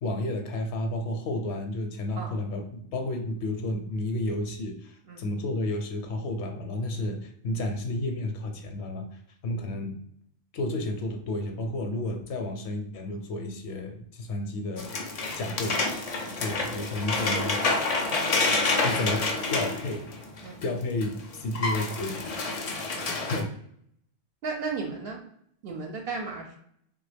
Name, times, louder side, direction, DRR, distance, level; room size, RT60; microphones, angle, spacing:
voice 1, 0.0-9.1 9.4-10.0 10.5-14.9 15.3-15.7 16.2-17.6 18.8-19.2 19.5-20.0 20.6-22.2 23.3-23.5, left 1 dB, 80° left, 4 dB, 0.8 m, -31 dB
sound 1, 14.8-20.7 21.0-21.1 21.3-23.4, left 3 dB, 55° left, 0.4 m, -28 dB
voice 2, 24.4-25.2 25.6-26.6, right 4 dB, 65° right, 0 dB, 0.7 m, -35 dB
3.1 x 2.2 x 3.2 m, 0.67 s
omnidirectional pair, 1.1 m